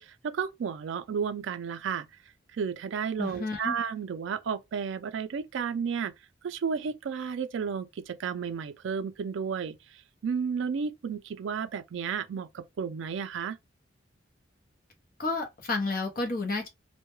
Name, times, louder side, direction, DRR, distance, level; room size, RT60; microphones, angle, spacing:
voice 1, 0.0-2.1 2.5-6.1 6.4-13.6, right 6 dB, 75° right, 0.4 m, -32 dB
voice 2, 3.2-3.8 15.2-16.7, left 3 dB, 45° left, 0.7 m, -31 dB
2.2 x 2.1 x 3.0 m
head